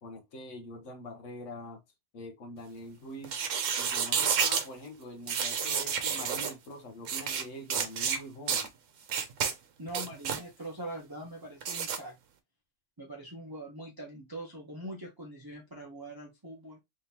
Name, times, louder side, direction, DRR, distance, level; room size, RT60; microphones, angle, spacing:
voice 1, 0.0-1.8 2.1-3.4 3.8-8.7, left 1 dB, 80° left, 1.3 m, -44 dB
sound 1, 3.2-4.7 5.3-6.5 7.1-7.4 7.7-8.2 8.5-8.7 9.1-9.5 9.9-10.4 11.6-12.0, right 7 dB, 90° right, 1.1 m, -30 dB
voice 2, 9.8-12.1 13.0-16.8, right 1 dB, 20° right, 0.9 m, -43 dB
3.5 x 3.5 x 2.8 m
omnidirectional pair, 1.3 m